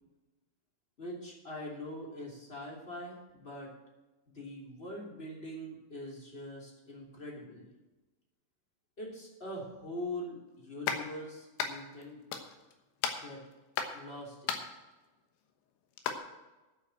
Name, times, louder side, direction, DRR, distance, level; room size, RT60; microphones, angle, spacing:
voice 1, 1.0-3.7 4.3-7.7 9.0-12.2 13.2-13.4 13.9-14.6, left 1 dB, 15° left, -2 dB, 2.5 m, -43 dB
sound 1, 10.9-11.1 11.6-12.0 12.3-12.7 13.0-14.0 14.5-14.8 15.9-16.2, left 7 dB, 80° left, 3.4 m, -34 dB
9.8 x 8.2 x 7.9 m, 1.1 s
omnidirectional pair, 5.3 m